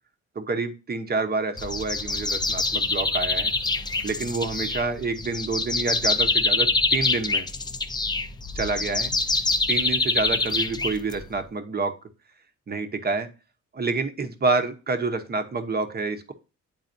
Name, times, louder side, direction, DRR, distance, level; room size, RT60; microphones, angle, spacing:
voice 1, 0.3-3.5 4.0-7.5 8.5-9.1 9.7-11.9 12.7-13.3 13.7-16.3, right 3 dB, 30° right, 8 dB, 1.0 m, -28 dB
sound 1, 1.6-11.4, left 3 dB, 15° left, 0.6 m, -25 dB
9.0 x 4.0 x 2.6 m, 0.33 s
cardioid pair, 90°, 30 cm